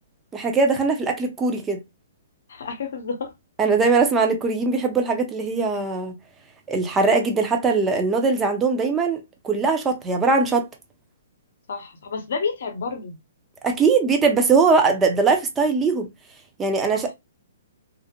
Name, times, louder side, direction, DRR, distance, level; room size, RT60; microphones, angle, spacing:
voice 1, 0.3-1.8 3.6-6.1 6.7-10.7 13.6-16.1 16.6-17.1, right 4 dB, 15° right, 0.5 m, -21 dB
voice 2, 2.5-3.3 11.7-13.2 16.9-17.1, left 5 dB, 65° left, 0.7 m, -30 dB
2.5 x 2.0 x 2.8 m
hypercardioid pair, 150°, 0 cm